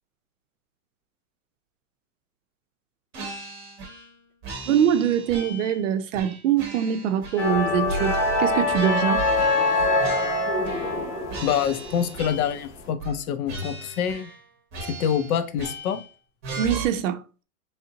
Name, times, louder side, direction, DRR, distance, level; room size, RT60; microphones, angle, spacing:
sound 1, 3.1-4.1 4.4-5.8 6.1-7.6 7.8-11.0 11.3-12.7 13.0-13.2 13.5-14.4 14.7-16.1 16.4-16.8, right 3 dB, 20° right, 0.8 m, -37 dB
voice 1, 4.6-9.3 16.6-17.2, right 9 dB, 60° right, 0.5 m, -23 dB
sound 2, 7.4-12.5, left 2 dB, 25° left, 0.5 m, -24 dB
voice 2, 11.4-14.3 14.9-16.0, left 8 dB, 75° left, 0.7 m, -26 dB
3.8 x 3.2 x 2.7 m
supercardioid pair, 170°, 44 cm